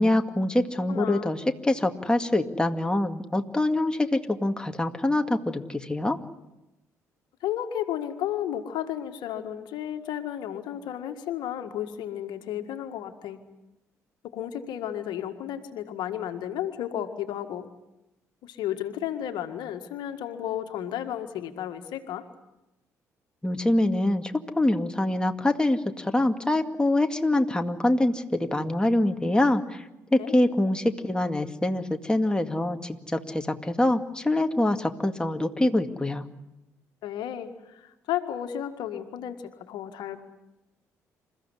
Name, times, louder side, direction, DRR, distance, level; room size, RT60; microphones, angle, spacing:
voice 1, 0.0-6.2 23.4-36.3, left 1 dB, 10° left, 5 dB, 2.1 m, -25 dB
voice 2, 0.9-1.3 7.4-13.4 14.2-17.6 18.4-22.2 30.2-30.4 37.0-40.3, left 11 dB, 65° left, 7 dB, 1.8 m, -33 dB
28.0 x 15.0 x 9.9 m, 0.95 s
hypercardioid pair, 50°, 8 cm